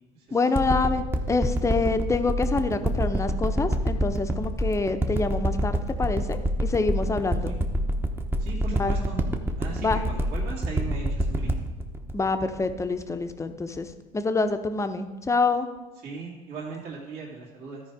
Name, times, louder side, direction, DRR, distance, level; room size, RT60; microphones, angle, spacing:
voice 1, 0.3-7.6 8.7-8.9 9.8-10.0 12.1-15.7, left 3 dB, 15° left, 8 dB, 0.7 m, -26 dB
sound 1, 0.5-13.3 13.9-14.0, equal, 10° right, 0.9 m, -26 dB
voice 2, 8.4-9.2 9.6-11.7 16.0-17.8, right 4 dB, 55° right, -5 dB, 2.4 m, -38 dB
13.0 x 4.8 x 4.7 m, 1.2 s
supercardioid pair, 95°, 19 cm